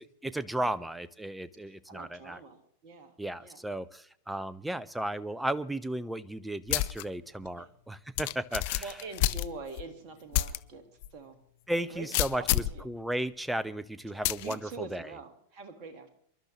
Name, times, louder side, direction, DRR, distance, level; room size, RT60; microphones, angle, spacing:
voice 1, 0.0-2.4 3.2-8.9 11.7-15.1, right 1 dB, 5° right, 17 dB, 0.6 m, -35 dB
voice 2, 1.7-3.1 3.4-3.6 7.6-7.7 8.8-10.8 11.1-11.4 11.9-12.9 14.1-16.1, right 3 dB, 40° right, 6 dB, 1.9 m, -45 dB
sound 1, 6.7-7.0 7.5-7.6 8.2-9.8 10.3-10.6 11.0-11.1 12.1-12.8 14.2-14.5, left 17 dB, 50° left, 0.5 m, -28 dB
26.0 x 11.5 x 3.2 m, 0.64 s
figure-of-eight pair, 90°, 0 cm